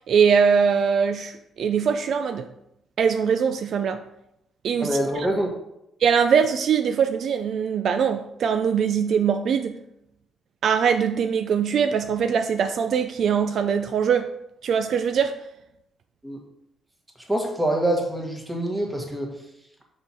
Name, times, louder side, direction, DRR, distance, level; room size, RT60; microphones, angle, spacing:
voice 1, 0.0-2.5 3.0-4.0 4.6-5.0 6.0-9.8 10.6-14.3 14.6-15.4, right 7 dB, 65° right, 8 dB, 0.4 m, -22 dB
voice 2, 4.8-5.5 16.2-16.4 17.3-19.3, right 1 dB, 10° right, 1 dB, 1.5 m, -25 dB
5.6 x 4.3 x 4.4 m, 0.81 s
cardioid pair, 90°, 0 cm